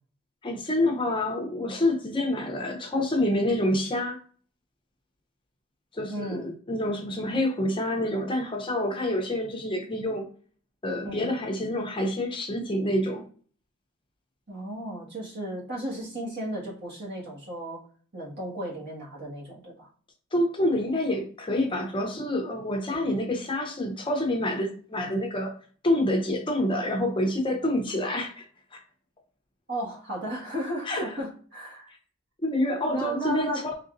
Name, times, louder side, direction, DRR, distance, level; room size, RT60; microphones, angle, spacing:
voice 1, 0.4-4.2 5.9-10.3 10.8-13.3 20.3-25.5 25.8-28.4 28.7-28.8 30.9-31.2 32.4-33.5, left 1 dB, 25° left, 1 dB, 0.7 m, -27 dB
voice 2, 6.1-6.5 11.0-11.3 14.5-17.8 18.1-19.9 22.9-23.1 29.7-31.9 32.9-33.6, equal, 50° right, -5 dB, 1.7 m, -35 dB
4.0 x 3.5 x 2.6 m, 0.43 s
head